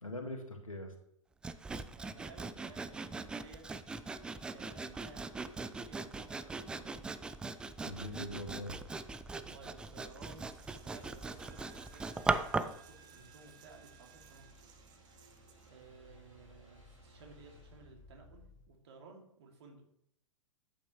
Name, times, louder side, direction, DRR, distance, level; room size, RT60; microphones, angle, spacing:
voice 1, 0.0-0.9 7.8-8.8, left 1 dB, 85° left, 3 dB, 1.9 m, -42 dB
Sawing, 1.4-12.8, right 3 dB, 5° right, 0.3 m, -39 dB
voice 2, 1.9-3.6 4.5-7.3 9.3-14.5 15.7-19.8, right 4 dB, 55° right, 1 dB, 2.6 m, -57 dB
sound 1, 7.8-18.7, left 2 dB, 80° right, 3.2 m, -59 dB
Coin (dropping), 9.8-15.8, right 7 dB, 25° right, 1.1 m, -60 dB
11.0 x 8.6 x 3.2 m, 0.71 s
figure-of-eight pair, 105°, 17 cm